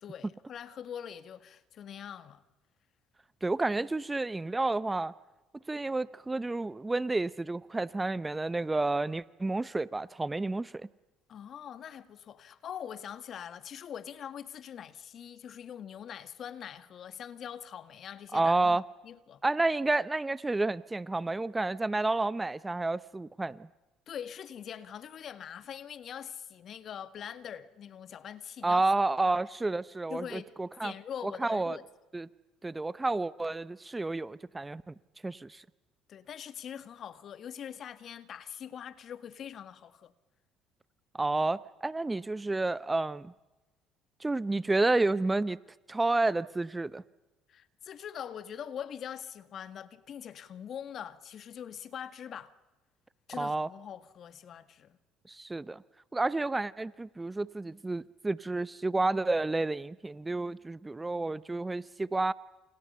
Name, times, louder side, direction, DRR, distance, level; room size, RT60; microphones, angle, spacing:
voice 1, 0.0-2.4 11.3-19.4 24.1-28.8 29.3-29.4 30.1-30.5 30.8-31.9 36.1-40.1 47.5-52.5 53.3-55.0, left 9 dB, 55° left, 1.8 m, -43 dB
voice 2, 3.4-5.1 5.7-10.9 18.3-18.8 19.4-23.7 28.6-30.9 31.2-31.8 32.1-32.3 32.6-34.9 35.2-35.6 41.1-43.3 44.2-45.6 45.9-47.0 53.4-53.7 55.3-55.8 56.1-62.3, right 2 dB, 15° right, 0.8 m, -30 dB
29.5 x 29.0 x 5.6 m
hypercardioid pair, 65°, 0 cm